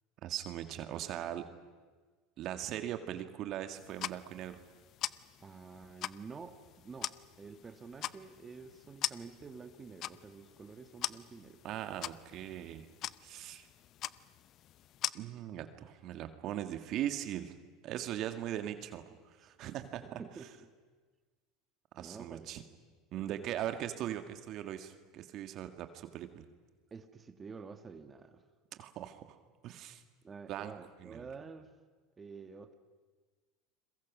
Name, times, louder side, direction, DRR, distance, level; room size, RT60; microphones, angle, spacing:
voice 1, 0.2-1.5 2.4-4.6 11.6-12.9 13.2-13.7 15.1-17.5 17.8-19.0 19.4-20.2 22.0-22.6 23.1-26.4 28.8-29.4 29.6-30.0 30.5-30.7 31.0-31.3, right 11 dB, 55° right, 8 dB, 1.8 m, -39 dB
sound 1, 3.8-15.1, left 13 dB, 50° left, 0.6 m, -43 dB
voice 2, 5.4-11.6 19.4-19.5 20.0-20.7 22.0-22.7 23.2-23.3 26.9-28.4 30.2-31.7 32.2-32.7, right 5 dB, 25° right, 8 dB, 1.7 m, -49 dB
30.0 x 22.5 x 6.2 m, 1.4 s
hypercardioid pair, 90°, 0 cm